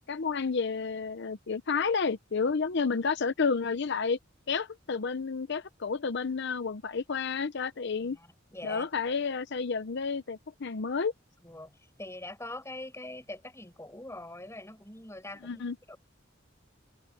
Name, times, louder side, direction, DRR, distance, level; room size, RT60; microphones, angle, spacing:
voice 1, 0.0-4.2 4.5-8.2 8.6-11.1 15.4-15.8, left 5 dB, 60° left, 0.7 m, -30 dB
voice 2, 8.0-8.9 11.4-16.0, left 2 dB, 15° left, 6.6 m, -43 dB
head